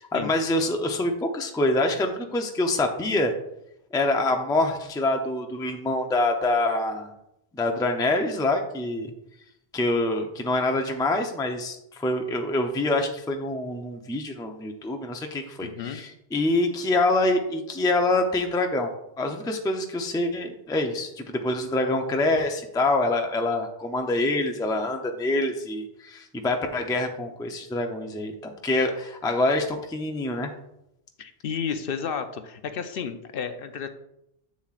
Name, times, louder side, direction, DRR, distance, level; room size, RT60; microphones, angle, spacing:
voice 1, 0.0-3.3 3.9-7.1 7.5-9.1 9.7-18.9 19.2-30.5, left 2 dB, 5° left, 4 dB, 0.4 m, -25 dB
voice 2, 15.6-16.0 31.2-33.9, left 6 dB, 65° left, 8 dB, 0.7 m, -32 dB
7.4 x 7.1 x 2.4 m, 0.84 s
omnidirectional pair, 1.1 m